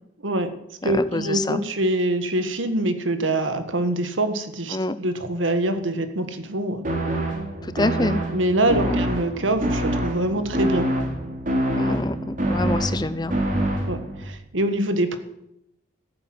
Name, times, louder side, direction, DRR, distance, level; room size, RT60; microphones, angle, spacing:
voice 1, 0.2-0.6 0.8-6.8 8.3-10.9 13.9-15.2, right 1 dB, 85° right, 9 dB, 1.7 m, -24 dB
voice 2, 0.8-1.6 4.7-5.0 7.6-8.2 8.7-9.0 11.7-13.3, left 2 dB, 20° left, 14 dB, 0.6 m, -26 dB
sound 1, 6.8-14.2, right 1 dB, 45° right, 3.1 m, -26 dB
15.0 x 9.2 x 7.8 m, 0.80 s
head